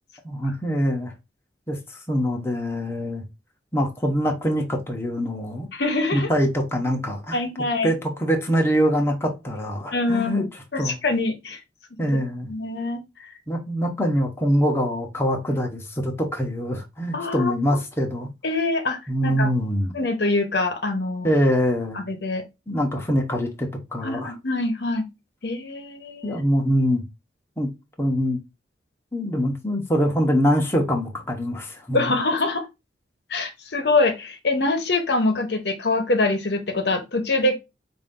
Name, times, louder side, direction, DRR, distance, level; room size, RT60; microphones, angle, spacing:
voice 1, 0.2-1.1 1.7-3.2 3.7-5.7 6.1-7.4 7.8-10.4 10.8-11.0 12.0-12.5 13.5-18.3 19.1-19.9 21.2-22.0 22.7-24.3 26.2-27.0 27.6-27.7 28.0-28.4 29.1-32.1, equal, 15° left, 0.8 m, -24 dB
voice 2, 5.7-6.3 7.3-7.9 9.9-10.5 10.7-11.6 12.5-13.3 17.1-17.5 18.4-19.5 19.9-21.3 21.9-22.4 24.0-25.0 25.4-26.4 31.9-32.7 33.3-37.6, left 2 dB, 70° left, 0.9 m, -24 dB
5.0 x 2.6 x 3.6 m
head